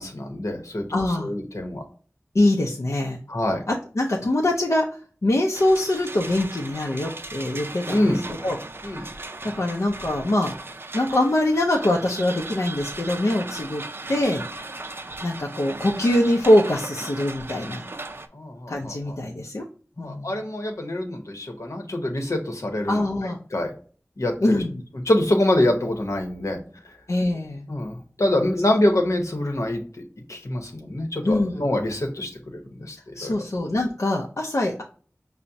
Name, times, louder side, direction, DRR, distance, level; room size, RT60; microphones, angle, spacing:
voice 1, 0.0-1.8 3.3-3.6 7.9-8.2 8.8-9.1 18.3-19.2 20.0-23.0 23.5-23.7 24.2-24.6 24.9-26.6 27.7-32.3 32.8-33.3, left 1 dB, 90° left, 3 dB, 0.8 m, -25 dB
voice 2, 0.9-1.3 2.3-3.2 3.7-4.9 5.2-8.6 9.6-10.5 10.9-13.8 14.1-14.4 15.2-17.8 18.7-19.6 20.0-20.3 22.9-23.4 24.4-24.8 27.1-27.7 31.2-31.6 33.1-34.8, left 1 dB, 70° left, -1 dB, 0.5 m, -23 dB
sound 1, 5.5-18.3, right 2 dB, 45° right, 0.4 m, -37 dB
5.6 x 2.0 x 2.6 m, 0.42 s
wide cardioid pair, 45°, 5 cm